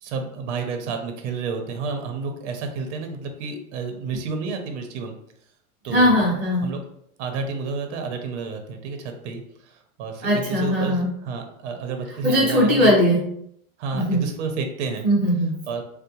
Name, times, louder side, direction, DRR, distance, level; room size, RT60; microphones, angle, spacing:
voice 1, 0.0-5.1 5.8-6.1 6.6-6.8 7.2-13.0 13.8-15.0 15.7-15.8, right 4 dB, 60° right, 5 dB, 0.6 m, -30 dB
voice 2, 5.9-6.7 10.2-11.1 12.2-13.2 13.9-14.2 15.0-15.6, equal, ahead, -11 dB, 0.8 m, -19 dB
3.7 x 2.0 x 2.8 m, 0.72 s
supercardioid pair, 175°, 41 cm